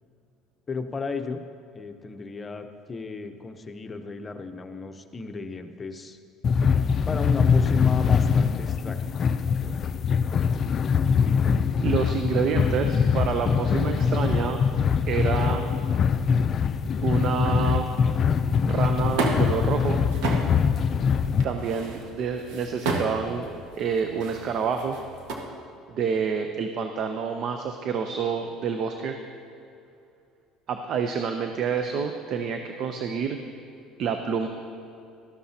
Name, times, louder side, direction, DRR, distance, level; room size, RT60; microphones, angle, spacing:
voice 1, 0.7-1.4 1.7-6.2 7.1-9.2, left 4 dB, 25° left, 7 dB, 0.7 m, -34 dB
sound 1, 6.4-21.4, left 6 dB, 45° left, 0.4 m, -23 dB
voice 2, 11.8-14.6 15.1-15.7 17.0-17.9 18.7-20.0 21.4-23.5 23.8-25.0 25.9-29.2 30.7-33.4 34.0-34.5, right 6 dB, 55° right, 6 dB, 0.6 m, -28 dB
sound 2, 18.5-25.4, right 2 dB, 80° right, 1.4 m, -33 dB
13.0 x 13.0 x 2.8 m, 2.6 s
supercardioid pair, 95°, 0 cm